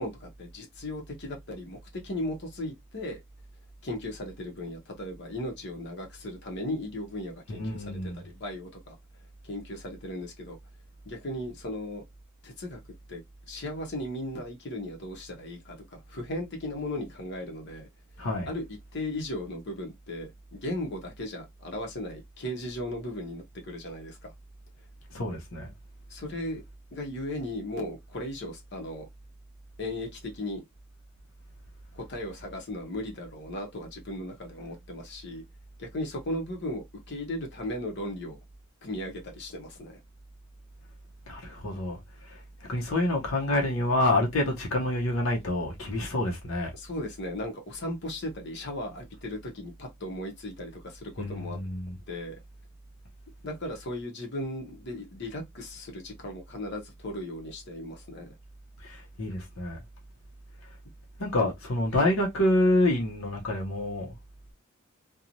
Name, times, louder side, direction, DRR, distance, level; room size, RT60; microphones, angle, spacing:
voice 1, 0.0-3.2 3.8-9.0 9.4-10.6 11.0-12.0 12.4-12.8 13.1-13.2 13.5-17.9 18.5-18.6 18.9-24.3 26.1-26.6 26.9-29.1 29.8-30.6 31.9-35.4 35.8-38.4 38.8-40.0 46.7-51.6 52.1-52.4 53.4-58.3 62.0-62.1, left 1 dB, 55° left, 0.9 m, -36 dB
voice 2, 7.5-8.2 18.2-18.5 25.1-25.7 41.3-46.7 51.2-51.9 58.8-59.8 61.2-64.1, left 1 dB, 80° left, 0.8 m, -28 dB
3.0 x 2.2 x 2.6 m
head